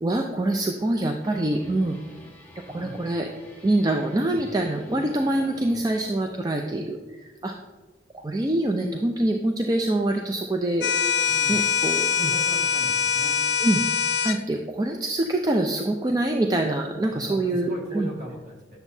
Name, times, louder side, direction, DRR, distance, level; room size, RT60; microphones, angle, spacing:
voice 1, 0.0-2.0 2.7-3.3 3.6-7.0 7.4-7.5 8.1-10.9 11.5-12.3 13.6-13.8 14.2-18.1, right 1 dB, 20° right, 3 dB, 0.4 m, -25 dB
sound 1, 1.2-6.2, left 1 dB, 10° left, 1.1 m, -47 dB
voice 2, 2.7-3.0 11.3-11.6 12.1-13.4 17.1-18.8, equal, 45° right, -2 dB, 1.9 m, -40 dB
sound 2, 10.8-14.4, left 7 dB, 75° left, 0.4 m, -23 dB
10.0 x 7.0 x 2.7 m, 1.2 s
head